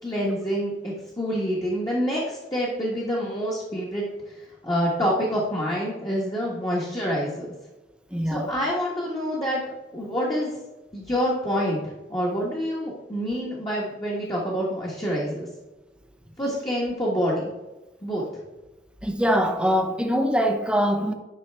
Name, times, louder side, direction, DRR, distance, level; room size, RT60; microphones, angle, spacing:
voice 1, 0.0-7.5 8.2-9.6 9.9-10.6 10.9-15.5 16.4-17.5 18.0-18.2, equal, 20° left, 1.2 m, -27 dB
voice 2, 8.1-8.5 19.0-21.1, equal, 5° right, 0.6 m, -23 dB
11.0 x 5.4 x 3.4 m
head